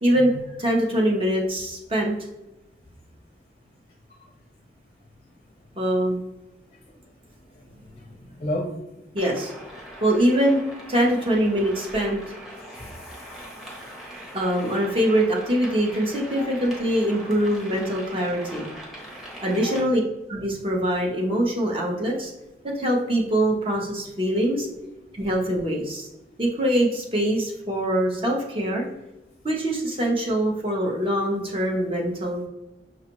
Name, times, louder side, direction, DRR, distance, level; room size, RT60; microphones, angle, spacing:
voice 1, 0.0-0.3 0.6-2.1 5.8-6.2 9.1-9.5 10.0-10.6 10.9-12.2 14.3-18.7 19.4-20.0 20.3-22.3 22.6-24.7 25.1-26.1 26.4-28.8 29.4-32.4, right 1 dB, 30° right, -1 dB, 0.8 m, -23 dB
voice 2, 7.9-8.8 11.0-11.1 12.7-13.2 16.4-16.6 19.4-19.8, left 1 dB, 35° left, 1 dB, 0.5 m, -34 dB
sound 1, 9.2-19.8, equal, ahead, 0.8 m, -41 dB
6.0 x 2.4 x 2.9 m, 0.99 s
head